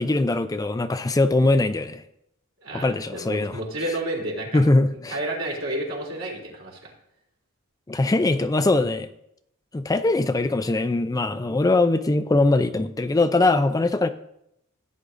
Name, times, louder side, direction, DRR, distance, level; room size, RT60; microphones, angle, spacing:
voice 1, 0.0-2.0 2.7-3.6 4.5-5.2 7.9-9.1 9.7-14.1, left 2 dB, 15° left, 9 dB, 0.4 m, -21 dB
voice 2, 2.6-4.6 5.1-6.9, right 1 dB, 70° right, -2 dB, 3.5 m, -30 dB
16.5 x 9.6 x 2.6 m, 0.77 s
head